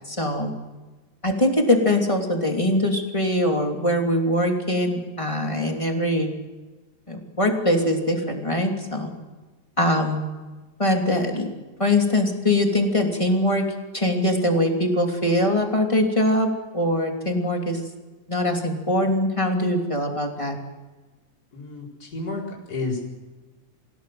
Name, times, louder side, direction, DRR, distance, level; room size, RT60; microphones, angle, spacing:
voice 1, 0.1-0.5 1.2-6.3 7.1-9.1 9.8-10.3 10.8-11.5 11.8-13.6 13.9-17.8 18.3-20.6, left 1 dB, 10° left, 2 dB, 2.4 m, -22 dB
voice 2, 21.5-23.0, left 3 dB, 25° left, -3 dB, 5.2 m, -31 dB
26.0 x 17.0 x 7.8 m, 1.2 s
omnidirectional pair, 4.0 m